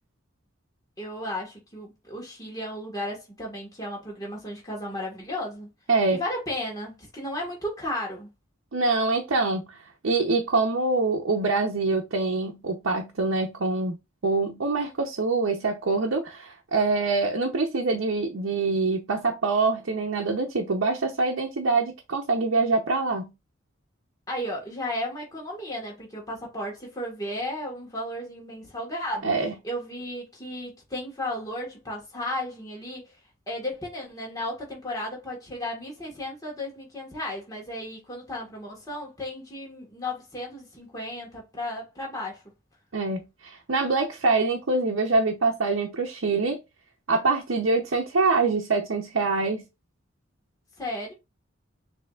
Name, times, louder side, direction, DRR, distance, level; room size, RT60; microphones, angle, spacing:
voice 1, 1.0-5.7 6.1-8.3 24.3-29.3 29.6-33.1 33.5-42.4 50.8-51.1, left 1 dB, 20° left, 1.4 m, -34 dB
voice 2, 5.9-6.2 8.7-9.8 10.0-14.0 14.2-23.3 29.2-29.5 42.9-46.6 47.1-49.7, right 3 dB, 85° right, 0.7 m, -25 dB
6.8 x 2.8 x 2.4 m
head